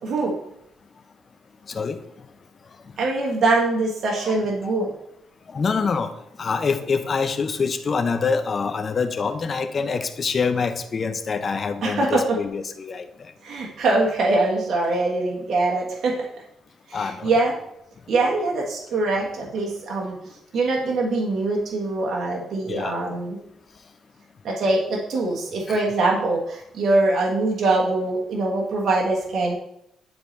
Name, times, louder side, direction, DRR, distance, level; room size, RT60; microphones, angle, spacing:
voice 1, 0.0-0.4 3.0-4.9 11.8-12.4 13.4-16.2 16.9-17.5 18.1-20.2 20.5-23.4 24.4-29.5, right 2 dB, 60° right, -2 dB, 1.5 m, -23 dB
voice 2, 1.7-2.0 4.2-4.4 4.6-4.8 5.5-6.1 6.4-13.3 16.9-17.3 22.7-23.0 25.7-25.8, left 5 dB, 40° left, 9 dB, 0.8 m, -25 dB
10.5 x 4.0 x 3.3 m, 0.78 s
cardioid pair, 90°, 0 cm